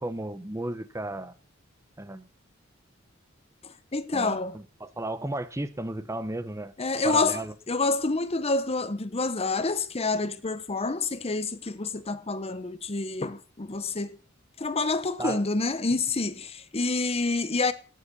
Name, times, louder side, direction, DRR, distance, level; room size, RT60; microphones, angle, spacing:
voice 1, 0.0-1.3 2.0-2.3 4.1-6.7 7.0-7.5 15.2-15.4, right 1 dB, 15° right, 0.8 m, -34 dB
voice 2, 3.6-4.5 6.8-14.2 14.6-17.7, left 3 dB, 30° left, 0.9 m, -28 dB
18.0 x 7.1 x 6.8 m
head